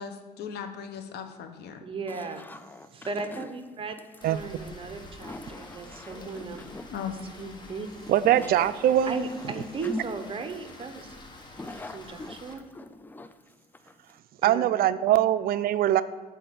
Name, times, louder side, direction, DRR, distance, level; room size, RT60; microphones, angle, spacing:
voice 1, 0.0-1.8 6.9-7.1 15.1-15.2, left 7 dB, 75° left, 7 dB, 0.9 m, -37 dB
voice 2, 1.8-2.5 2.9-3.9 4.2-6.6 7.3-7.9 9.0-11.2 11.6-12.7 14.4-14.6, right 4 dB, 30° right, 7 dB, 0.9 m, -36 dB
sound 1, 2.1-14.2, left 2 dB, 10° left, 0.4 m, -43 dB
Rain, 4.2-12.5, left 2 dB, 25° left, 1.3 m, -48 dB
voice 3, 4.2-4.6 8.1-9.1 14.4-16.0, right 12 dB, 65° right, 14 dB, 0.4 m, -22 dB
7.7 x 4.6 x 6.8 m, 1.5 s
cardioid pair, 110°, 17 cm